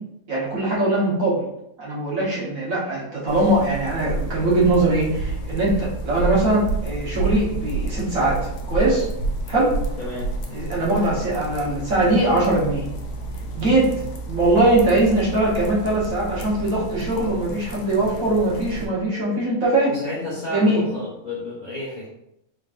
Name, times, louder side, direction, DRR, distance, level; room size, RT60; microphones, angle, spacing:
voice 1, 0.3-1.5 1.8-9.1 9.5-9.8 10.5-12.9 13.5-13.9 14.3-19.9 20.5-20.8, right 2 dB, 70° right, -6 dB, 1.7 m, -21 dB
sound 1, 3.3-18.9, right 2 dB, 70° left, 1.0 m, -30 dB
voice 2, 10.0-10.3 19.9-22.1, left 2 dB, 35° left, -8 dB, 0.8 m, -31 dB
3.8 x 3.7 x 2.5 m, 0.80 s
omnidirectional pair, 1.5 m